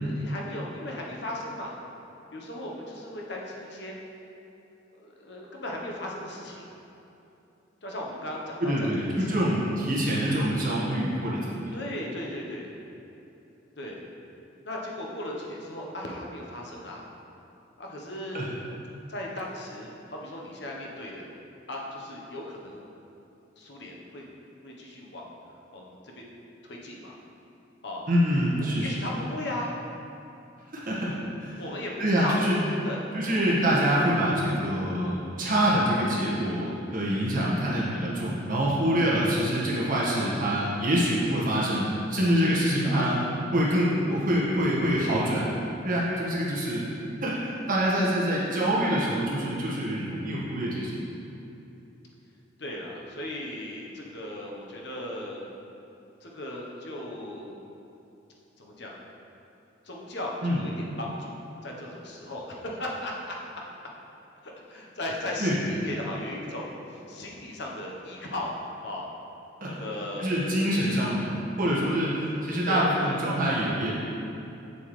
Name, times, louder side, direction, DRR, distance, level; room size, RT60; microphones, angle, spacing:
voice 1, 0.0-1.7 2.3-4.0 5.0-6.7 7.8-9.4 11.7-12.7 13.8-14.0 14.6-17.0 17.8-18.5 19.1-21.3 21.7-22.9 23.6-24.3 24.6-25.3 25.7-26.3 26.6-27.2 27.8-28.1 28.8-29.8 31.6-33.0 42.4-43.1 52.6-55.5 56.2-57.6 58.6-59.0 59.8-63.4 64.4-68.5 68.8-69.1 69.6-70.6 72.6-73.2, left 1 dB, 60° left, -2 dB, 1.0 m, -37 dB
voice 2, 8.6-11.8 18.3-18.5 28.1-28.9 30.7-31.5 32.0-32.6 33.1-43.2 43.5-45.5 45.8-46.8 47.2-51.1 60.4-60.6 65.4-65.5 69.6-69.7 70.2-71.3 71.6-74.0, equal, 45° right, -6 dB, 1.5 m, -25 dB
7.1 x 7.0 x 3.2 m, 2.9 s
head